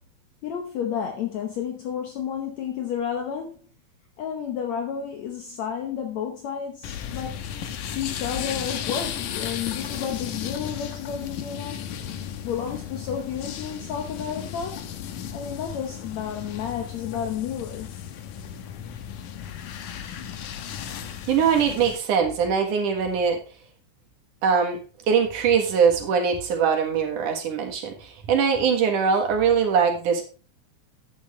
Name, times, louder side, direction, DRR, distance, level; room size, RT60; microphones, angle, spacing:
voice 1, 0.4-3.6 4.2-7.4 7.9-11.8 12.4-14.8 15.3-17.9, left 8 dB, 65° left, 3 dB, 2.2 m, -31 dB
sound 1, 6.8-22.0, left 9 dB, 80° left, 2.4 m, -35 dB
voice 2, 21.3-23.4 24.4-24.8 25.1-30.2, right 6 dB, 75° right, 2 dB, 3.1 m, -22 dB
11.0 x 8.8 x 3.2 m, 0.35 s
omnidirectional pair, 3.6 m